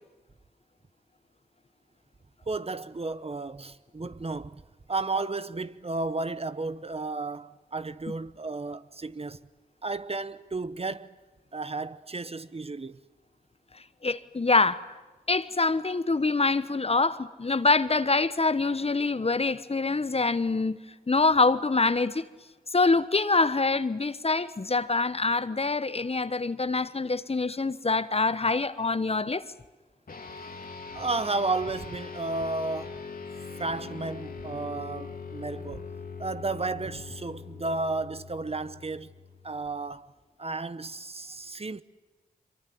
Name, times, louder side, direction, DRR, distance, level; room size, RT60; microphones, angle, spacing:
voice 1, 2.5-4.6 4.9-9.4 9.8-11.2 11.5-13.0 30.9-33.0 33.6-35.9 36.2-39.1 39.4-40.1 40.4-41.8, right 3 dB, 40° right, 1.0 m, -33 dB
voice 2, 14.0-14.8 15.3-20.8 21.1-22.2 22.7-29.4, left 3 dB, 40° left, 1.1 m, -25 dB
sound 1, 30.1-39.8, left 5 dB, 65° left, 2.4 m, -42 dB
24.0 x 23.5 x 9.5 m
cardioid pair, 40°, 16 cm